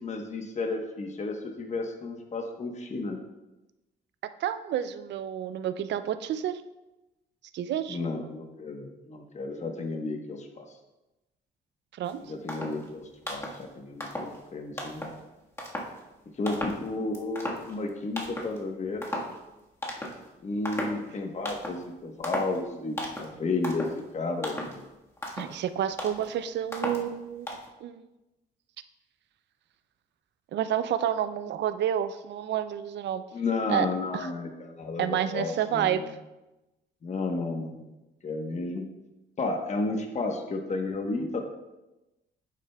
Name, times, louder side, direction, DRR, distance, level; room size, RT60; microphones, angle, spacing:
voice 1, 0.0-3.2 7.9-10.7 12.2-15.1 16.4-19.1 20.4-24.9 33.3-36.1 37.0-37.9 38.2-38.8 39.4-41.4, left 3 dB, 35° left, 3 dB, 1.0 m, -32 dB
voice 2, 4.4-6.6 7.5-8.0 12.0-12.2 25.4-27.5 27.8-28.0 30.5-33.2 33.7-33.9 34.1-34.3 35.0-36.0, right 10 dB, 60° right, 11 dB, 0.4 m, -29 dB
sound 1, 12.1-12.2 12.5-12.9 13.2-13.6 14.0-14.4 14.8-15.2 15.6-16.0 16.5-16.9 17.1-17.9 18.2-18.6 19.0-19.4 19.8-20.3 20.6-21.0 21.4-21.8 22.2-22.6 23.0-23.4 23.6-24.0 24.4-24.8 25.2-25.6 26.0-26.3 26.7-27.1 27.5-27.7, equal, 15° left, 1.4 m, -35 dB
9.1 x 7.4 x 2.3 m, 1.0 s
cardioid pair, 90°, 20 cm